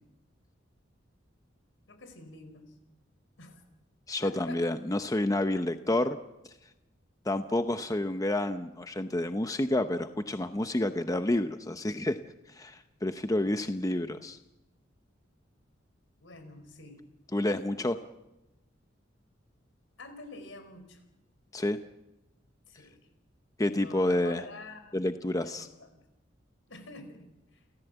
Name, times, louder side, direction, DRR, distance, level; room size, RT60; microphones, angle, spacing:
voice 1, 1.9-2.8 3.4-3.6 4.2-4.6 13.4-13.6 16.2-17.0 20.0-21.0 22.7-23.0 23.6-25.0 25.4-25.9 26.7-27.6, left 2 dB, 75° left, 9 dB, 4.7 m, -48 dB
voice 2, 4.1-6.2 7.3-12.2 12.5-14.4 17.3-18.0 21.5-21.8 23.6-24.4 24.9-25.7, left 1 dB, 20° left, 9 dB, 0.7 m, -29 dB
29.5 x 14.5 x 8.0 m, 0.99 s
head